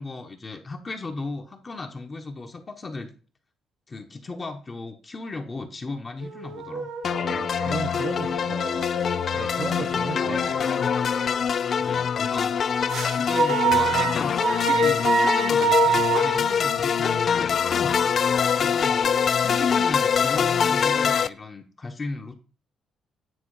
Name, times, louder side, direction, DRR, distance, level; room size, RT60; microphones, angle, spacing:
voice 1, 0.0-3.1 3.9-6.9 9.8-10.1 11.8-12.8 13.1-17.9 18.5-22.4, left 3 dB, 30° left, 4 dB, 1.2 m, -36 dB
sound 1, 6.2-11.4 12.9-17.3, right 7 dB, 85° right, 2.7 m, -28 dB
sound 2, 7.0-21.3, left 7 dB, 55° left, 0.4 m, -23 dB
voice 2, 7.2-8.8 9.3-10.7 13.9-14.1, right 5 dB, 45° right, 5 dB, 0.9 m, -35 dB
9.4 x 3.4 x 4.9 m, 0.38 s
cardioid pair, 90°, 0 cm